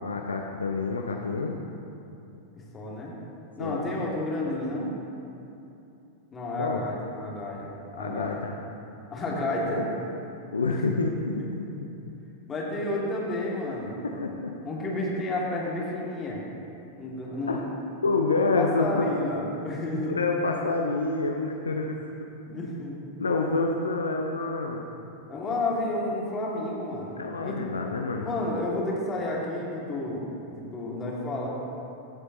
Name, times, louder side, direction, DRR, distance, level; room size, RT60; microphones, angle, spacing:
voice 1, 0.0-1.6 3.6-4.0 6.6-6.8 8.0-8.5 9.8-9.9 10.5-11.9 14.0-14.5 17.5-17.6 18.0-19.1 20.0-22.3 23.2-24.9 27.2-28.2, left 3 dB, 75° left, 2 dB, 0.6 m, -28 dB
voice 2, 2.6-3.1 3.6-4.9 6.3-8.4 9.1-9.9 10.7-10.8 11.4-11.5 12.5-14.0 14.6-16.4 17.0-17.7 18.5-20.2 22.5-23.0 25.3-27.2 27.4-27.6 28.2-31.5, left 2 dB, 20° left, -4 dB, 2.4 m, -31 dB
17.0 x 7.9 x 3.0 m, 2.7 s
figure-of-eight pair, 90°, 0 cm